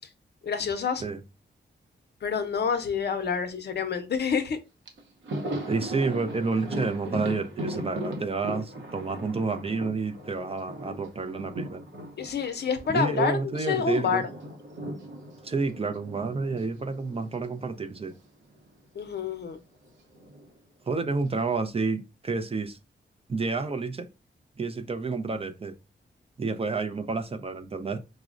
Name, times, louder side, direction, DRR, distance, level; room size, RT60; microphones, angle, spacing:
voice 1, 0.4-1.0 2.2-4.6 12.2-14.2 18.9-19.6, left 6 dB, 60° left, 0.6 m, -28 dB
Thunder, 4.5-4.6 4.9-13.7 13.9-18.3 18.5-18.7 19.8-20.5, right 1 dB, 75° right, 0.8 m, -38 dB
voice 2, 5.7-11.8 12.9-14.2 15.4-18.1 20.9-22.8 23.3-24.1 24.6-25.7 26.4-28.0, right 4 dB, 30° right, 0.4 m, -29 dB
4.8 x 2.0 x 2.4 m
wide cardioid pair, 105°, 20 cm